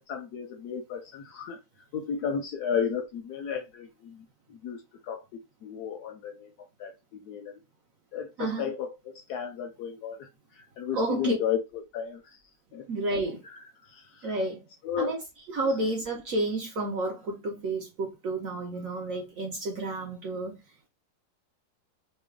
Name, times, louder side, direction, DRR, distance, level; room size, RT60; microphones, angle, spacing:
voice 1, 0.0-1.6 1.9-6.5 6.8-7.6 8.1-10.3 10.5-12.4 12.7-12.9 13.4-13.5 13.9-14.3 14.8-15.1 15.6-15.7, left 7 dB, 70° left, 0.9 m, -34 dB
voice 2, 8.4-8.7 10.9-11.4 12.9-13.4 14.2-14.6 15.0-15.2 15.5-20.5, right 2 dB, 65° right, 0.9 m, -30 dB
3.1 x 2.2 x 3.4 m
omnidirectional pair, 2.0 m